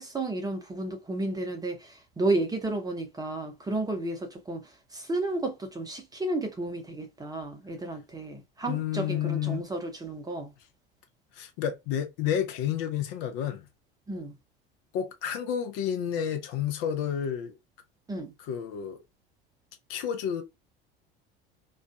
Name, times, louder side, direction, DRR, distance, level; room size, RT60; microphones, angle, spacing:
voice 1, 0.0-4.6 4.9-10.5 14.1-14.3 18.1-18.3, right 2 dB, 15° right, 0.7 m, -32 dB
voice 2, 8.7-9.6 11.3-13.7 14.9-17.6 18.4-19.0 19.9-20.4, left 9 dB, 50° left, 0.7 m, -30 dB
2.4 x 2.3 x 2.2 m
figure-of-eight pair, 65°, 29 cm